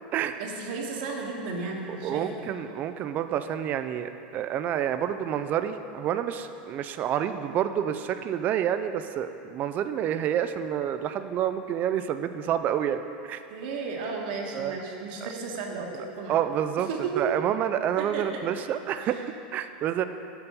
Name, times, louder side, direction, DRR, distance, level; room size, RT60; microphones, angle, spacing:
voice 1, 0.4-2.5 13.5-16.4 16.9-17.2 18.0-18.2 19.0-19.2, right 4 dB, 65° right, 0 dB, 1.4 m, -34 dB
voice 2, 1.9-13.4 14.5-14.8 15.2-15.3 16.3-16.9 17.2-20.0, right 10 dB, 35° right, 9 dB, 0.3 m, -28 dB
6.9 x 5.2 x 7.0 m, 2.7 s
supercardioid pair, 130°, 5 cm